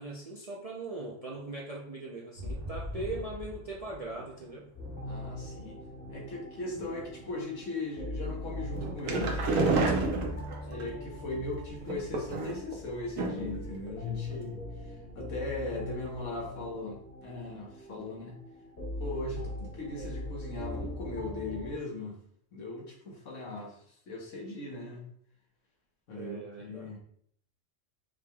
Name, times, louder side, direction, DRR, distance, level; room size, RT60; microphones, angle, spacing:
voice 1, 0.0-4.7 10.7-11.0 26.1-27.0, right 2 dB, 45° right, -4 dB, 0.5 m, -40 dB
sound 1, 2.4-6.4 6.7-8.8 9.2-9.3, left 1 dB, 70° right, 1.3 m, -44 dB
sound 2, 4.8-21.7, left 2 dB, 50° left, 1.8 m, -41 dB
voice 2, 5.0-5.8 6.1-9.9 10.6-14.6 15.1-18.4 19.0-22.2 22.5-23.8 24.1-25.0 26.1-27.0, left 2 dB, 75° left, -1 dB, 1.5 m, -38 dB
sound 3, 8.7-10.8 11.8-12.7 13.2-13.6 13.9-14.0 14.3-14.4, right 3 dB, 90° right, 1.1 m, -29 dB
5.5 x 3.3 x 2.3 m, 0.65 s
omnidirectional pair, 1.3 m